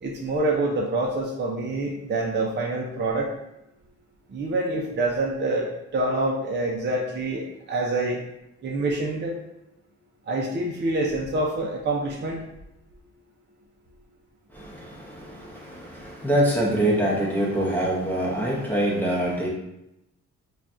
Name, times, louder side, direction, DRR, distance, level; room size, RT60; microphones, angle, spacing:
voice 1, 0.0-3.3 4.3-8.2 8.6-9.3 10.3-12.4, right 2 dB, 35° right, -2 dB, 0.6 m, -26 dB
voice 2, 14.5-19.5, right 1 dB, 5° left, -5 dB, 0.7 m, -25 dB
5.7 x 2.3 x 2.5 m, 0.87 s
cardioid pair, 125°, 30 cm